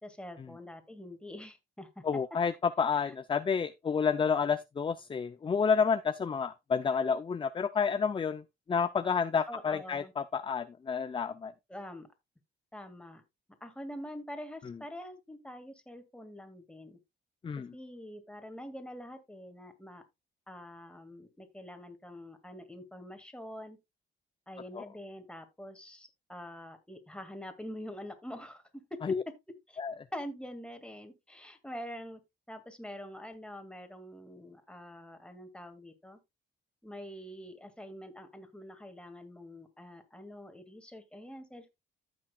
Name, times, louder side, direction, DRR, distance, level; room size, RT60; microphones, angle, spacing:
voice 1, 0.0-2.0 2.9-3.1 9.5-10.1 11.7-12.1 12.7-13.2 13.6-17.0 17.7-20.0 20.5-23.8 24.5-28.6 29.7-29.8 30.1-32.2 32.5-36.2 36.8-41.7, equal, 5° left, 2.1 m, -45 dB
voice 2, 2.0-11.5 14.7-14.8 17.4-17.7 24.7-24.8 29.0-29.2 29.8-29.9, left 6 dB, 25° left, 0.5 m, -30 dB
14.5 x 6.2 x 2.3 m
cardioid pair, 90°, 20 cm